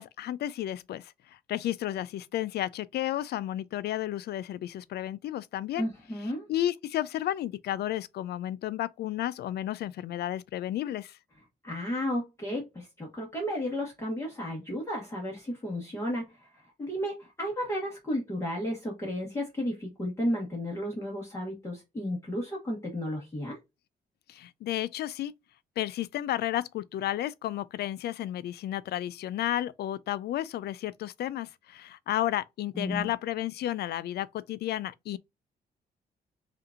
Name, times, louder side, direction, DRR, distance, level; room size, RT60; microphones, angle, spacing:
voice 1, 0.0-5.9 6.5-11.2 24.3-25.3 25.8-35.2, left 13 dB, 80° left, 0.4 m, -32 dB
voice 2, 5.8-6.5 11.6-23.6 32.7-33.1, equal, 15° left, 1.3 m, -33 dB
5.6 x 2.5 x 2.3 m
wide cardioid pair, 160°, 17 cm